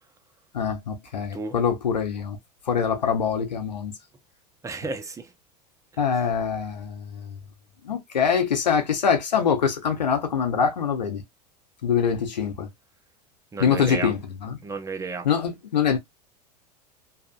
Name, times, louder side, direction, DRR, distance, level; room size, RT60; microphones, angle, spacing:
voice 1, 0.5-2.4 2.7-3.9 6.0-7.0 7.8-11.2 11.8-12.7 13.6-14.6 15.2-16.0, left 7 dB, 90° left, 0.7 m, -24 dB
voice 2, 4.6-5.3 13.5-14.1 14.6-15.3, right 3 dB, 15° right, 0.6 m, -32 dB
2.7 x 2.4 x 2.4 m
hypercardioid pair, 85°, 21 cm